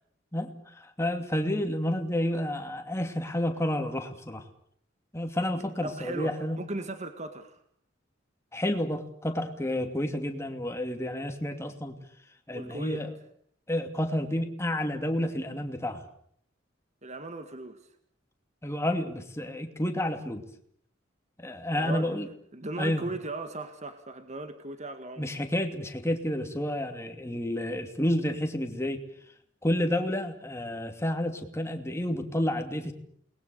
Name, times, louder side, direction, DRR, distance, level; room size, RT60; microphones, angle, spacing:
voice 1, 0.3-4.4 5.1-6.6 8.5-12.0 12.5-13.1 13.7-16.0 18.6-20.4 21.4-22.3 22.8-23.1 25.2-29.0 29.6-32.9, left 1 dB, 15° left, 2.7 m, -30 dB
voice 2, 5.8-7.6 12.5-13.1 17.0-17.8 21.7-22.2 22.5-25.3, right 2 dB, 35° right, 1.9 m, -37 dB
29.5 x 21.0 x 6.9 m
head